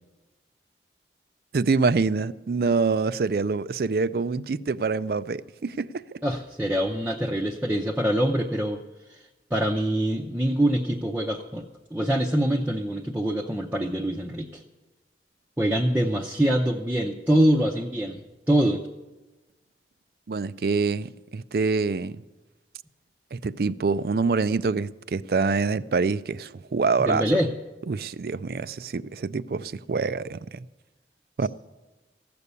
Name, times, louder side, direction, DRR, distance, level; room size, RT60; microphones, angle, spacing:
voice 1, 1.5-6.2 20.3-22.2 23.3-27.2 27.9-30.6 31.4-31.5, right 4 dB, 60° right, 0.4 m, -26 dB
voice 2, 6.2-8.8 9.1-9.2 9.5-11.6 11.9-14.6 15.6-18.2 18.5-18.8 27.0-27.5, right 1 dB, 10° right, 0.6 m, -24 dB
15.5 x 6.9 x 9.6 m
head